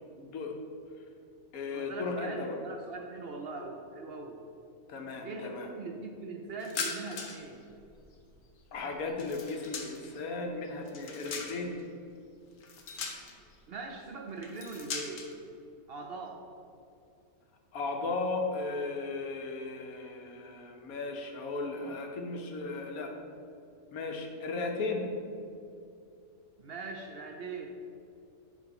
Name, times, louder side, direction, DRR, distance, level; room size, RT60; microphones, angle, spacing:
voice 1, 0.2-0.5 1.5-2.6 4.9-5.7 8.7-11.8 17.7-23.1 23.9-25.1, left 3 dB, 90° left, 2 dB, 1.4 m, -36 dB
voice 2, 1.7-4.4 5.2-7.6 13.7-15.3 15.9-16.4 26.6-27.8, right 3 dB, 55° right, 2 dB, 0.7 m, -41 dB
sound 1, 6.6-7.5 7.8-10.2 10.6-11.8 12.6-13.5 14.4-15.3, left 5 dB, 70° left, 1.2 m, -40 dB
9.3 x 3.6 x 5.3 m, 2.5 s
omnidirectional pair, 1.5 m